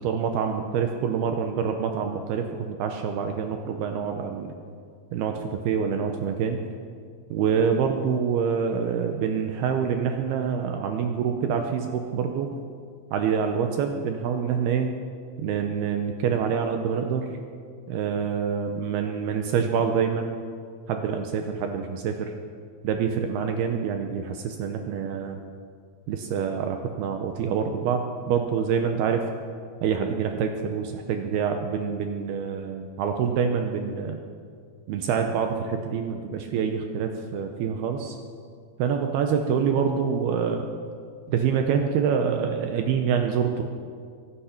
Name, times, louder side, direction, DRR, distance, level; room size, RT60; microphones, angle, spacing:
voice 1, 0.0-4.5 5.1-6.6 7.3-12.5 13.1-14.9 15.4-17.3 17.9-20.4 20.9-22.3 22.8-25.4 26.1-29.3 29.8-34.2 34.9-38.2 38.8-40.7 41.3-43.6, right 7 dB, 80° right, 5 dB, 2.4 m, -26 dB
23.5 x 10.0 x 5.9 m, 2.1 s
omnidirectional pair, 5.5 m